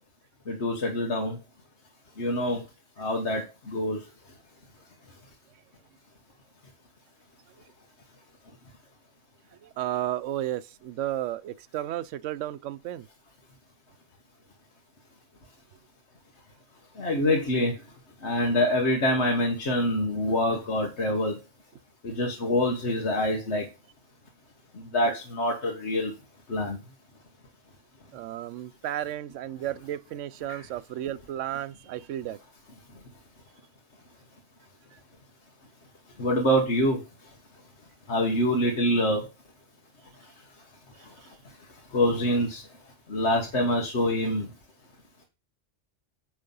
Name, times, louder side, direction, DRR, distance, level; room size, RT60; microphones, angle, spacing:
voice 1, 0.5-1.3 2.2-2.6 3.0-3.4 3.7-4.0 17.0-17.7 18.2-21.3 22.2-23.6 24.9-26.1 26.5-26.8 36.2-37.0 38.1-39.2 41.9-42.6 43.1-44.4, left 1 dB, 65° left, 1.5 m, -25 dB
voice 2, 9.6-13.1 28.1-32.4 34.9-35.0, right 12 dB, 85° right, 0.9 m, -33 dB
9.1 x 3.5 x 5.4 m
omnidirectional pair, 1.2 m